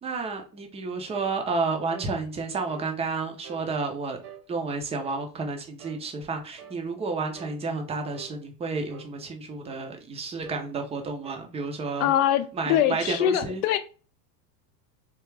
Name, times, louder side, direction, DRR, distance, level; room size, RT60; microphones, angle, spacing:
voice 1, 0.0-4.2 4.5-12.1 12.5-13.6, right 4 dB, 15° right, 4 dB, 0.5 m, -31 dB
sound 1, 1.1-1.4 1.9-2.1 2.7-2.9 3.4-3.7 4.2-4.5 5.0-5.3 5.8-6.0 6.6-6.8 7.4-7.6 8.1-8.4 8.9-9.1 9.7-9.9 10.5-10.7 11.2-11.5 12.0-12.3 12.8-13.0, right 8 dB, 65° right, 1.2 m, -46 dB
voice 2, 12.0-13.8, left 11 dB, 65° left, 9 dB, 0.5 m, -23 dB
3.4 x 2.4 x 3.2 m, 0.36 s
hypercardioid pair, 110°, 49 cm